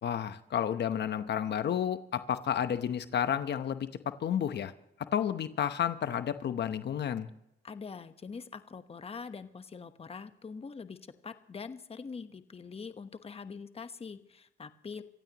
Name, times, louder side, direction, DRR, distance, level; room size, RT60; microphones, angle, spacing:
voice 1, 0.0-4.7 5.1-7.3, left 9 dB, 60° left, 10 dB, 1.0 m, -31 dB
voice 2, 7.6-11.0 11.2-15.0, left 5 dB, 30° left, 10 dB, 1.1 m, -44 dB
25.0 x 15.5 x 3.0 m, 0.77 s
cardioid pair, 90°, 20 cm